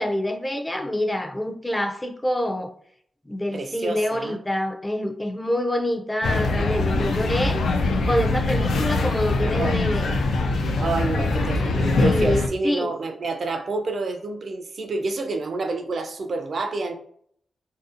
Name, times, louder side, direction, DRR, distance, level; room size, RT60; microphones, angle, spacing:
voice 1, 0.0-2.7 3.3-10.2 11.6-11.7 12.0-12.9, left 1 dB, 15° left, 0.4 m, -26 dB
voice 2, 3.5-4.4 9.5-9.9 10.8-16.9, right 3 dB, 65° right, 0.4 m, -28 dB
sound 1, 6.2-12.5, left 3 dB, 90° left, 0.3 m, -23 dB
2.7 x 2.0 x 2.4 m
cardioid pair, 60°, 0 cm